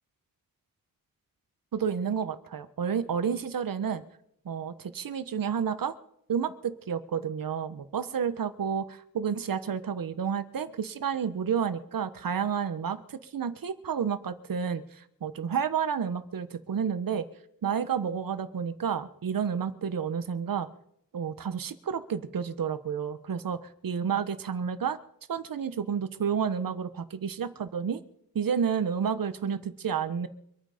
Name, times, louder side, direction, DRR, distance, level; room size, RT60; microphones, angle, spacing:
voice 1, 1.7-4.0 4.4-5.9 6.3-17.2 17.6-20.7 21.1-25.0 25.3-28.0 28.3-30.3, right 7 dB, 75° right, 12 dB, 1.3 m, -30 dB
25.0 x 9.3 x 5.1 m, 0.74 s
wide cardioid pair, 110°, 34 cm